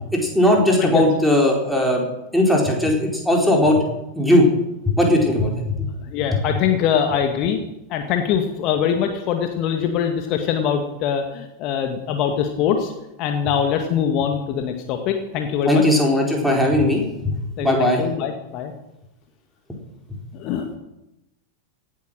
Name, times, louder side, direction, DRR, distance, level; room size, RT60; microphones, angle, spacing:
voice 1, 0.1-2.0 2.3-3.8 4.2-4.5 5.0-5.9 6.3-6.4 15.7-17.0 17.6-18.0, left 1 dB, ahead, -1 dB, 4.1 m, -18 dB
voice 2, 6.1-7.6 7.9-12.9 13.2-15.8 17.6-18.7 20.3-20.8, left 8 dB, 40° left, 5 dB, 1.6 m, -23 dB
17.5 x 9.3 x 6.4 m, 0.91 s
figure-of-eight pair, 90°, 0 cm